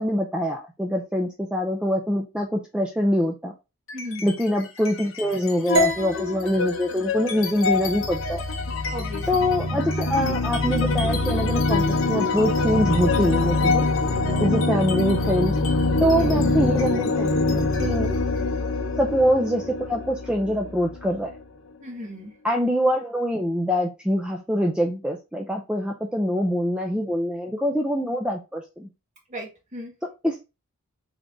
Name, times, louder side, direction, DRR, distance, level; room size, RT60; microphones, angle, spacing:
voice 1, 0.0-3.5 4.2-8.4 9.3-13.9 14.4-15.6 16.0-18.1 19.0-21.3 22.4-28.9 30.0-30.5, equal, 5° right, 2 dB, 0.4 m, -24 dB
sound 1, 3.9-4.4 4.8-21.4, left 3 dB, 60° left, 0.8 m, -24 dB
voice 2, 3.9-4.3 8.9-9.3 9.7-9.8 16.2-16.5 21.8-22.3 29.3-29.9, equal, 35° right, 0 dB, 1.6 m, -35 dB
sound 2, 5.7-9.9, equal, 55° right, 1.2 m, -30 dB
3.7 x 3.5 x 3.7 m, 0.27 s
head